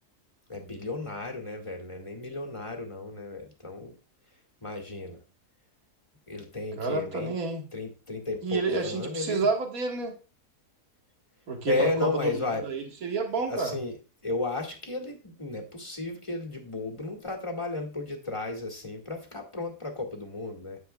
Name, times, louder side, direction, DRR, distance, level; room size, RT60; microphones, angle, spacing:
voice 1, 0.5-3.9 4.6-5.2 6.3-7.4 7.7-9.5 11.7-12.7 13.3-13.9 14.2-20.8, left 2 dB, 20° left, 1 dB, 1.9 m, -33 dB
voice 2, 6.8-7.6 8.4-10.1 11.5-13.7, right 4 dB, 60° right, 2 dB, 2.1 m, -30 dB
9.6 x 9.5 x 2.3 m, 0.33 s
omnidirectional pair, 1.7 m